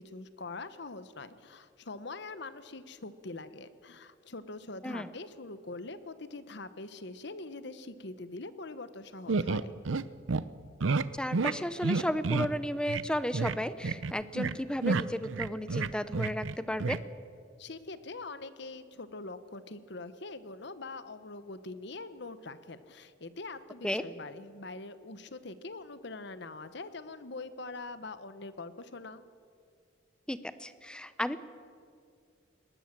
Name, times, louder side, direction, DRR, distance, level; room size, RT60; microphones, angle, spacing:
voice 1, 0.0-9.7 17.6-29.2, left 3 dB, 60° left, 13 dB, 1.1 m, -43 dB
sound 1, 9.3-10.0 10.3-10.4 10.8-11.0 11.3-11.5 11.8-12.5 12.9-13.0 13.3-13.6 13.8-14.5 14.8-16.5 16.8-17.0, right 4 dB, 90° right, 0.7 m, -29 dB
voice 2, 11.1-17.0 23.8-24.0 30.3-31.4, equal, 5° left, 13 dB, 0.8 m, -33 dB
21.0 x 19.0 x 7.5 m, 2.3 s
head